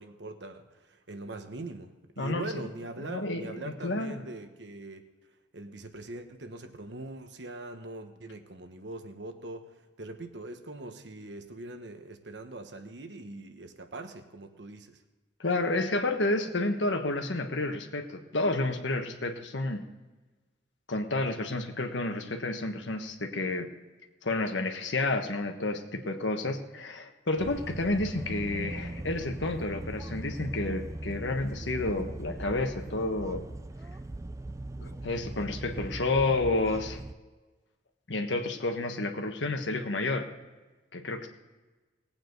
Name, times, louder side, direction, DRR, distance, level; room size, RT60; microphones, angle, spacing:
voice 1, 0.0-5.0 5.5-9.7 10.0-15.0, right 2 dB, 70° right, 7 dB, 1.2 m, -42 dB
voice 2, 2.2-2.5 3.0-4.2 15.4-19.8 20.9-23.7 24.2-33.4 34.8-37.0 38.1-40.3 40.9-41.3, left 2 dB, 85° left, 5 dB, 1.4 m, -30 dB
sound 1, 27.4-37.1, right 1 dB, 15° right, 0.3 m, -39 dB
19.0 x 8.8 x 4.0 m, 1.2 s
head